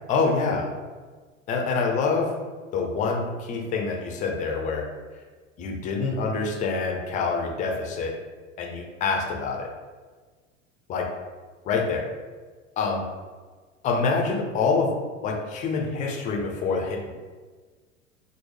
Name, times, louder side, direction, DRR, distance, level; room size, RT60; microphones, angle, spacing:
voice 1, 0.1-0.7 1.5-2.4 2.7-4.9 5.6-8.2 8.6-9.7 10.9-11.1 11.7-12.1 12.8-13.0 13.8-17.1, left 4 dB, 20° left, 1 dB, 0.5 m, -26 dB
4.5 x 2.0 x 3.2 m, 1.4 s
figure-of-eight pair, 85°, 39 cm